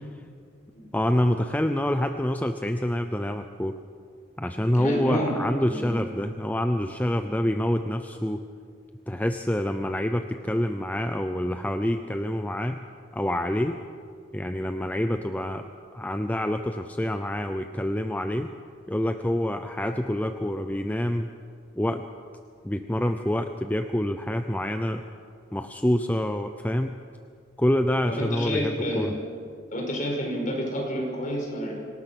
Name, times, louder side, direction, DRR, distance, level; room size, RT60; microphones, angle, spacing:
voice 1, 0.9-3.8 4.4-8.4 9.1-12.8 13.1-13.8 14.3-18.5 18.9-21.3 21.8-22.0 22.6-25.0 25.5-27.0 27.6-29.1, left 1 dB, 10° left, 7 dB, 0.6 m, -27 dB
voice 2, 4.7-5.4 5.7-6.0 28.1-29.2 29.7-31.7, equal, 40° left, 0 dB, 5.4 m, -29 dB
25.0 x 18.5 x 6.0 m, 2.2 s
head